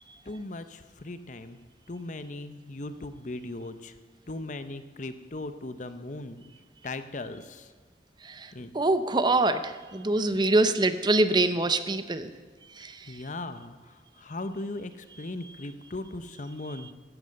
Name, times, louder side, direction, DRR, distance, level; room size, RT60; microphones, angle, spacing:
voice 1, 0.3-1.6 1.9-3.9 4.3-6.4 6.8-7.7 8.5-8.7 13.1-16.9, left 2 dB, 45° left, 11 dB, 0.8 m, -38 dB
voice 2, 8.7-12.3 12.8-12.9, right 2 dB, 25° right, 12 dB, 0.6 m, -24 dB
14.0 x 11.0 x 6.6 m, 1.5 s
head